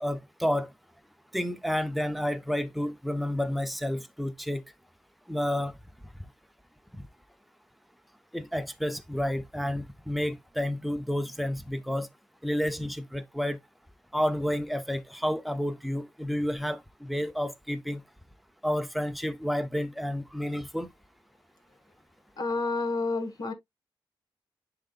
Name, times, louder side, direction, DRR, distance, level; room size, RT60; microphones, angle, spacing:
voice 1, 0.0-0.7 1.3-4.6 5.3-5.7 6.9-7.0 8.3-12.1 12.4-13.6 14.1-18.0 18.6-20.9, equal, ahead, 0.7 m, -30 dB
voice 2, 22.4-23.5, left 3 dB, 45° left, 1.6 m, -29 dB
10.5 x 3.9 x 2.4 m
wide cardioid pair, 150°, 9 cm